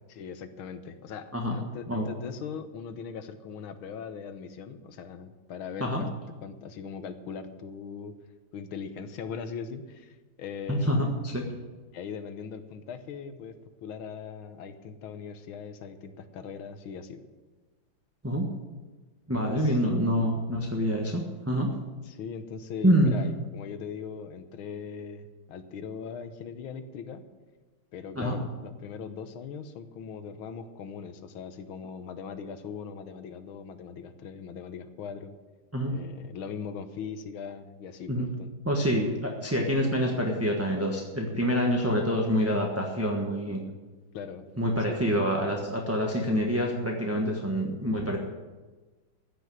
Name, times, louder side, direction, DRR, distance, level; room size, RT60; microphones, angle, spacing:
voice 1, 0.1-8.1 8.5-11.1 11.9-17.2 19.3-19.8 22.0-27.2 27.9-35.3 35.9-38.5 44.1-44.5 44.9-45.0, left 6 dB, 85° left, 10 dB, 1.8 m, -40 dB
voice 2, 10.7-11.5 18.2-18.5 19.3-21.7 22.8-23.2 28.1-28.3 35.7-36.0 38.1-38.3 38.6-43.6 44.6-48.2, equal, 10° right, -1 dB, 1.1 m, -26 dB
15.5 x 6.3 x 9.3 m, 1.3 s
omnidirectional pair, 2.2 m